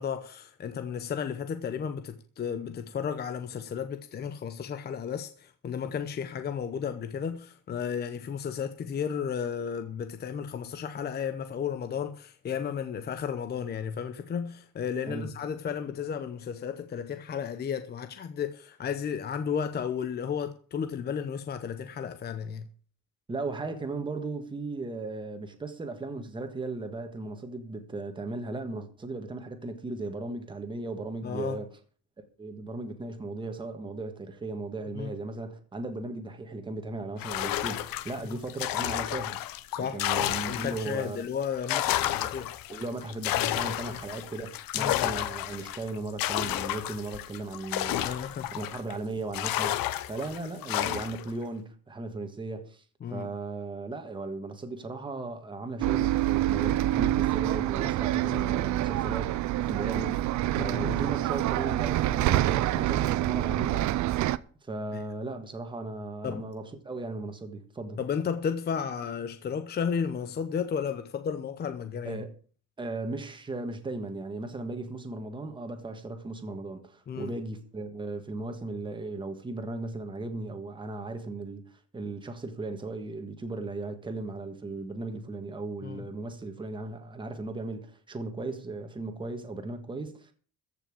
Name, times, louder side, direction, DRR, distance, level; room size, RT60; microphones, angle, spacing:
voice 1, 0.0-22.7 31.2-31.6 34.9-35.1 38.2-38.4 39.7-40.0 40.5-42.5 43.9-44.0 44.8-45.1 48.0-48.5 53.0-53.3 58.3-58.4 60.6-61.0 64.9-65.0 66.2-66.5 68.0-72.2 77.1-77.3 85.8-86.1, left 7 dB, 30° left, 0.8 m, -33 dB
voice 2, 23.3-31.7 32.4-39.4 39.8-41.3 41.7-42.3 42.7-48.2 48.5-52.8 53.1-60.2 60.5-64.0 64.6-68.0 72.0-72.3 72.8-90.3, right 2 dB, 15° right, 1.6 m, -37 dB
sound 1, 37.2-41.0 41.4-48.9 49.3-51.3, left 14 dB, 70° left, 1.1 m, -31 dB
Bus, 55.8-64.4, right 14 dB, 55° right, 0.6 m, -26 dB
14.5 x 5.9 x 8.6 m
cardioid pair, 180°, 35 cm